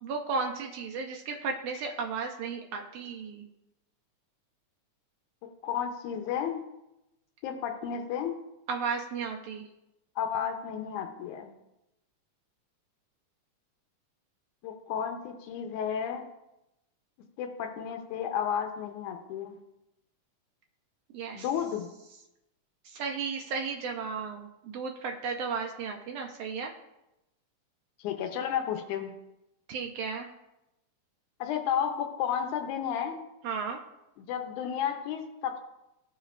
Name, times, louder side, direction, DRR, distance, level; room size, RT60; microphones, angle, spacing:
voice 1, 0.0-3.5 8.7-9.7 21.1-21.5 22.8-26.7 29.7-30.3 33.4-33.8, right 5 dB, 80° right, 1 dB, 1.5 m, -34 dB
voice 2, 5.4-6.6 7.4-8.4 10.2-11.5 14.6-16.3 17.4-19.6 21.3-21.9 28.0-29.2 31.4-33.2 34.2-35.6, left 8 dB, 80° left, 5 dB, 2.1 m, -32 dB
15.0 x 5.6 x 2.4 m, 0.92 s
omnidirectional pair, 3.7 m